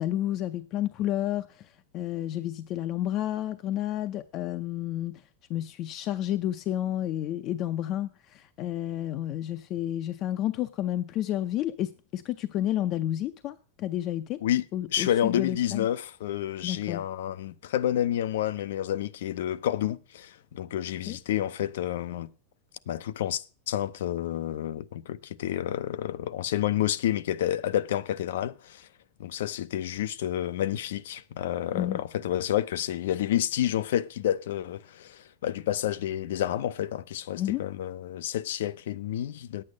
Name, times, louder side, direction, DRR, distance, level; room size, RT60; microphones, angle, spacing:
voice 1, 0.0-14.4 14.7-15.9 16.6-17.0 21.1-21.2 31.7-32.0 37.3-37.6, left 12 dB, 35° left, 0.5 m, -31 dB
voice 2, 14.9-22.3 22.9-28.9 29.2-39.6, left 11 dB, 75° left, 0.6 m, -29 dB
9.7 x 8.7 x 6.4 m
supercardioid pair, 160°, 0 cm